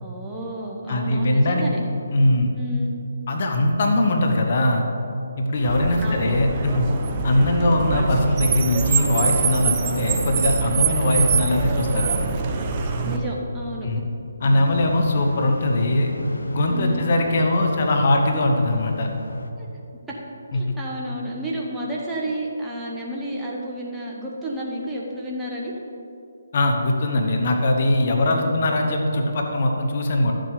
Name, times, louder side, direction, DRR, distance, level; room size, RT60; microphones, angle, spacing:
voice 1, 0.0-1.8 2.6-2.9 6.0-6.4 13.0-14.0 16.7-17.1 19.6-19.7 20.5-25.7 28.3-28.5, equal, 5° right, -5 dB, 1.3 m, -31 dB
voice 2, 0.9-1.8 2.1-2.5 3.3-4.9 5.4-6.9 7.2-12.1 13.8-14.0 14.4-16.1 16.5-19.1 20.5-20.6 26.5-30.3, left 1 dB, 45° left, 2 dB, 1.3 m, -21 dB
Car, 5.6-13.2, right 5 dB, 30° right, 1.0 m, -24 dB
sound 1, 14.4-19.5, left 1 dB, 75° left, 0.9 m, -34 dB
11.5 x 7.7 x 5.1 m, 2.7 s
figure-of-eight pair, 150°, 0 cm